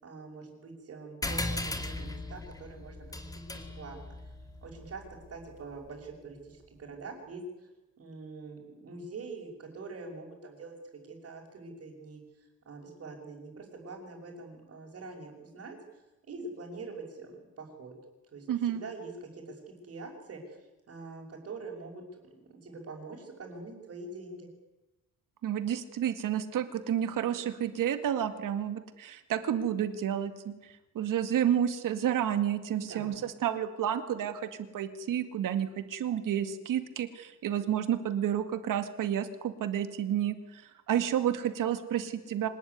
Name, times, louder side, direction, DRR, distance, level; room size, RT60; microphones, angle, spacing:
voice 1, 0.0-4.1 4.6-5.0 5.3-7.7 8.0-10.8 11.1-15.8 16.3-17.9 18.3-20.6 20.9-24.5 32.8-33.2, right 3 dB, 45° right, -5 dB, 6.0 m, -44 dB
sound 1, 1.2-6.1, left 2 dB, 10° left, 2.4 m, -38 dB
voice 2, 18.5-18.8 25.4-30.5 30.9-34.5 34.7-40.6 40.9-42.5, right 10 dB, 90° right, 10 dB, 2.2 m, -30 dB
25.5 x 20.0 x 9.7 m, 1.0 s
wide cardioid pair, 155°, 31 cm